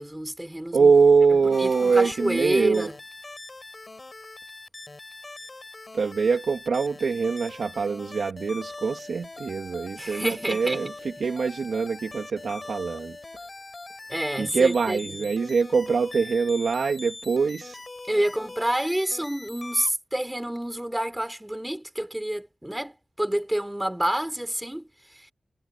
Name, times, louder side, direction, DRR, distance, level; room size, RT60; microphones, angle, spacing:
voice 1, 0.0-0.9 1.4-2.9 10.0-10.8 14.1-15.0 18.1-24.9 25.2-25.3, right 1 dB, 10° right, 3.9 m, -28 dB
voice 2, 0.7-2.9 5.9-13.2 14.4-17.8, right 5 dB, 90° right, 2.5 m, -23 dB
sound 1, 1.5-19.9, left 2 dB, 40° left, 6.7 m, -42 dB
wide cardioid pair, 70°, 0 cm